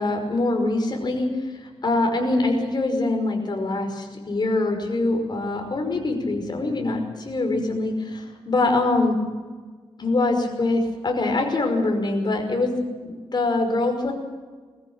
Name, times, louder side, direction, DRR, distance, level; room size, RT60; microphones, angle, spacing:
voice 1, 0.0-9.2 10.0-12.8 13.0-14.1, left 2 dB, 45° left, 3 dB, 5.4 m, -24 dB
22.0 x 14.5 x 9.0 m, 1.4 s
wide cardioid pair, 100°, 11 cm